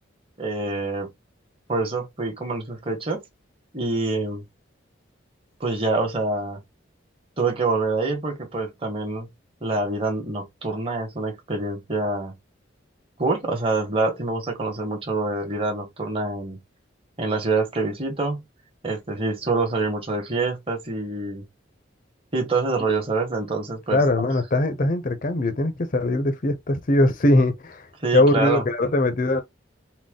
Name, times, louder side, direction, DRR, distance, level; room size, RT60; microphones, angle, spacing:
voice 1, 0.4-1.1 1.7-3.2 3.7-4.4 5.6-6.6 7.4-9.3 9.6-12.3 13.2-16.6 17.2-18.4 18.8-21.4 22.3-24.3 28.0-28.6, right 3 dB, 30° right, 1.2 m, -26 dB
voice 2, 23.9-27.9 28.1-29.4, left 1 dB, 45° left, 0.6 m, -21 dB
3.9 x 2.2 x 3.6 m
head